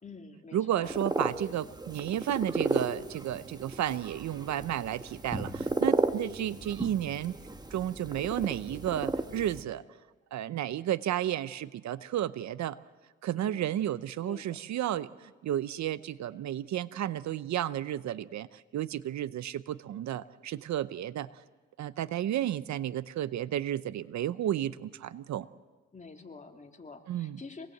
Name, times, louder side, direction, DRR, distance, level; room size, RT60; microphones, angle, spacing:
voice 1, 0.0-0.9 13.4-13.7 14.2-14.6 25.9-27.7, left 4 dB, 25° left, 3 dB, 3.0 m, -47 dB
voice 2, 0.5-7.4 7.7-9.8 10.3-12.8 13.2-21.3 21.8-25.5 27.1-27.4, right 11 dB, 65° right, 16 dB, 0.8 m, -32 dB
sound 1, 0.8-9.6, right 2 dB, 15° right, 1.5 m, -34 dB
26.5 x 20.0 x 7.9 m, 1.3 s
cardioid pair, 90°, 30 cm